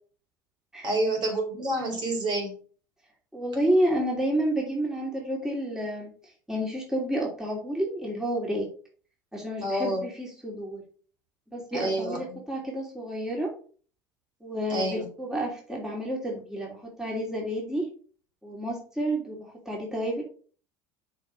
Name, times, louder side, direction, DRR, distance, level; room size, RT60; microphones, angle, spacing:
voice 1, 0.8-2.6 9.6-10.0 11.7-12.4 14.7-15.1, right 1 dB, 45° right, 1 dB, 4.4 m, -28 dB
voice 2, 3.3-6.1 6.5-8.7 9.3-10.8 11.5-13.5 14.4-17.9 18.4-20.2, right 1 dB, 5° right, -2 dB, 2.9 m, -30 dB
6.9 x 4.8 x 5.3 m, 0.43 s
hypercardioid pair, 80°, 10 cm